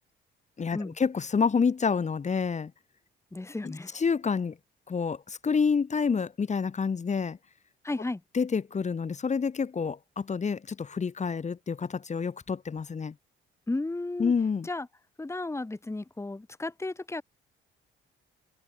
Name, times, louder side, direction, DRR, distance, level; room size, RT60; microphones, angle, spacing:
voice 1, 0.6-2.7 3.6-4.6 4.9-7.4 8.3-13.1 14.2-14.7, left 5 dB, 35° left, 2.1 m, -28 dB
voice 2, 3.3-4.0 7.8-8.2 13.7-14.3 14.6-14.9 15.2-17.2, left 2 dB, 15° left, 2.0 m, -34 dB
open air
cardioid pair, 90°, 20 cm